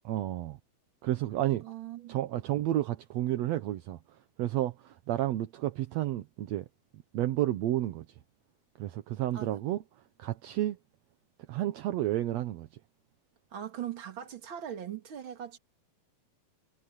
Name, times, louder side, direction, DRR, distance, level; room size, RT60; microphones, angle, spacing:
voice 1, 0.1-0.6 1.0-1.7 2.1-4.0 4.4-6.7 7.1-8.1 8.8-9.8 10.2-10.8 11.5-12.7, right 14 dB, 70° right, 1.7 m, -31 dB
voice 2, 1.6-2.2 9.3-9.6 13.5-15.6, right 10 dB, 40° right, 2.4 m, -40 dB
omnidirectional pair, 3.9 m